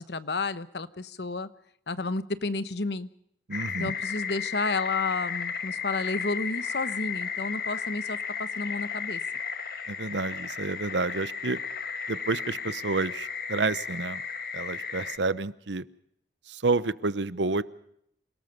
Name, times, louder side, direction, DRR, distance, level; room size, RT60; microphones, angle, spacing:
voice 1, 0.0-1.5 1.9-3.1 3.8-9.2, left 3 dB, 70° left, 14 dB, 1.1 m, -31 dB
sound 1, 3.5-15.2, left 6 dB, 55° left, 1.8 m, -34 dB
voice 2, 3.5-3.9 9.9-11.6 12.1-14.2 14.5-15.8 16.5-17.6, right 3 dB, 90° right, 16 dB, 0.9 m, -29 dB
28.0 x 18.5 x 5.3 m, 0.72 s
head